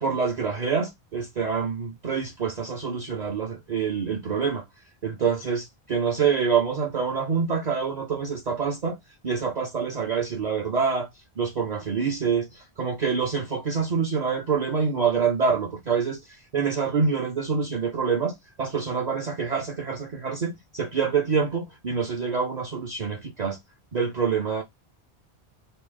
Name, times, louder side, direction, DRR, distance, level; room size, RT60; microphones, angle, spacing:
voice 1, 0.0-4.6 5.0-9.0 9.2-11.1 11.4-16.2 16.5-23.6 23.9-24.6, right 6 dB, 50° right, 0.6 m, -26 dB
4.2 x 2.0 x 3.2 m
omnidirectional pair, 1.1 m